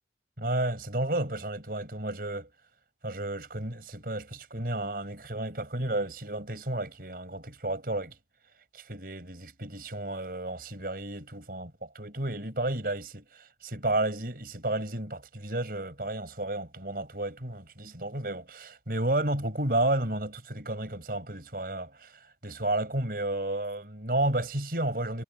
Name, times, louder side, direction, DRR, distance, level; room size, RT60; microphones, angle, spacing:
voice 1, 0.4-2.5 3.0-8.2 8.7-22.1 22.4-25.2, right 1 dB, 55° right, 5.8 m, -32 dB
head